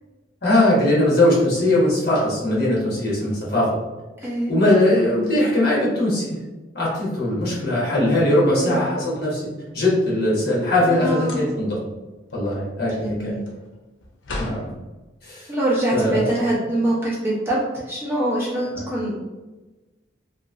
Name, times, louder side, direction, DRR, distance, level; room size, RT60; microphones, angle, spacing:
voice 1, 0.4-3.7 4.5-6.4 6.7-9.5 9.7-11.8 12.3-13.3 14.4-14.7 15.2-15.5 15.9-16.2, left 1 dB, 55° left, -6 dB, 1.1 m, -20 dB
voice 2, 4.2-4.6 8.4-8.8 10.8-11.4 12.8-13.4 15.5-19.2, right 1 dB, 10° right, -7 dB, 0.7 m, -24 dB
sound 1, 8.8-9.9 11.1-11.8 12.2-14.7, left 1 dB, 85° left, 0.6 m, -37 dB
3.0 x 2.5 x 2.4 m, 1.1 s
head